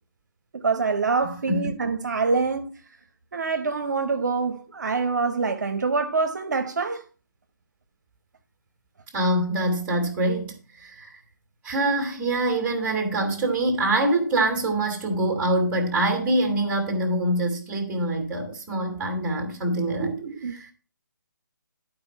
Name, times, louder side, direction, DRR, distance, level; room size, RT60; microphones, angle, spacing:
voice 1, 0.5-2.7 3.3-7.0 20.0-20.5, right 4 dB, 60° right, 0.9 m, -25 dB
voice 2, 1.2-1.7 9.1-11.1 11.6-20.1, right 1 dB, 15° right, 2.0 m, -25 dB
10.5 x 4.8 x 5.4 m
figure-of-eight pair, 145°, 11 cm